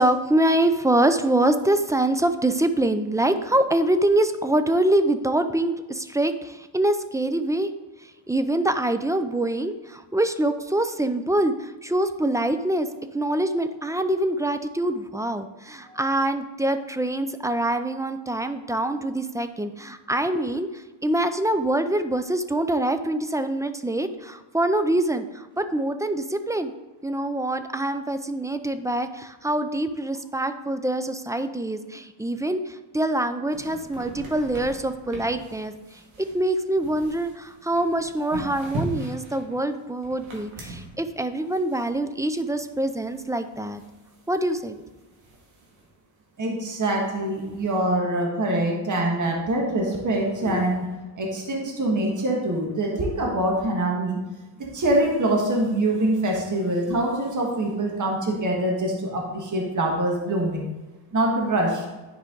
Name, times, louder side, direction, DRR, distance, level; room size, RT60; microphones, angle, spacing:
voice 1, 0.0-7.7 8.3-12.9 13.1-26.7 27.0-35.7 36.2-43.8 44.3-44.8, right 1 dB, 5° right, 9 dB, 0.4 m, -24 dB
sound 1, 33.5-45.9 46.2-46.3 46.5-47.8, right 1 dB, 85° right, 2.4 m, -41 dB
voice 2, 46.4-50.9 51.2-54.2 54.7-60.7 61.1-61.8, right 1 dB, 40° right, -1 dB, 1.8 m, -24 dB
11.0 x 4.8 x 3.9 m, 1.1 s
cardioid pair, 105°, 47 cm